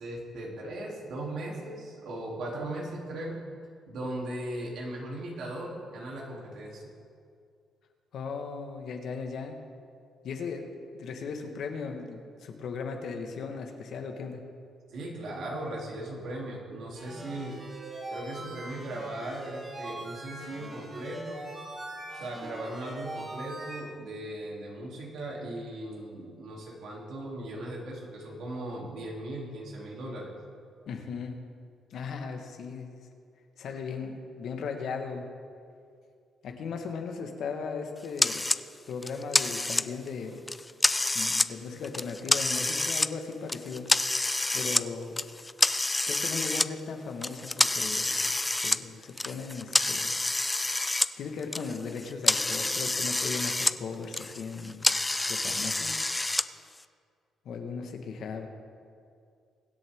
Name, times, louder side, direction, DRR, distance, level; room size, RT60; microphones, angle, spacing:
voice 1, 0.0-3.4 3.9-6.8 14.9-17.6 18.1-21.5 22.1-30.3, right 1 dB, 75° right, -2 dB, 3.0 m, -38 dB
voice 2, 8.1-9.6 10.2-10.7 10.9-14.4 30.9-31.4 31.9-33.0 33.6-35.2 36.4-38.4 38.9-40.4 41.1-43.9 44.5-45.2 46.1-50.1 51.2-54.9 55.3-56.0 57.4-58.5, left 5 dB, 70° left, 4 dB, 1.4 m, -37 dB
sound 1, 16.9-23.8, right 2 dB, 30° right, 3.5 m, -41 dB
sound 2, 38.2-38.6 39.0-40.1 40.5-41.5 41.8-43.1 43.5-44.9 45.2-46.7 47.2-51.1 51.4-53.8 54.0-56.4, left 2 dB, 15° left, 0.4 m, -27 dB
23.0 x 8.0 x 3.6 m, 2.3 s
cardioid pair, 90°, 0 cm